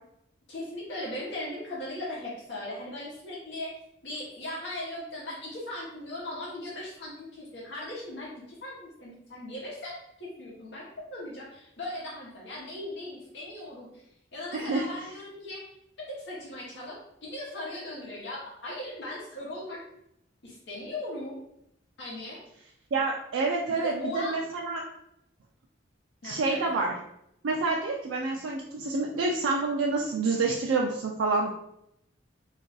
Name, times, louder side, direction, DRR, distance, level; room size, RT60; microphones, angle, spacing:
voice 1, 0.5-3.7 4.0-15.7 16.1-19.8 20.4-21.4 22.0-22.4 23.7-24.4 26.2-26.8, left 1 dB, 65° left, -5 dB, 0.9 m, -38 dB
voice 2, 14.5-14.9 22.9-24.9 26.2-26.9 27.4-31.5, right 3 dB, 85° right, -1 dB, 0.4 m, -28 dB
2.5 x 2.3 x 3.8 m, 0.77 s
head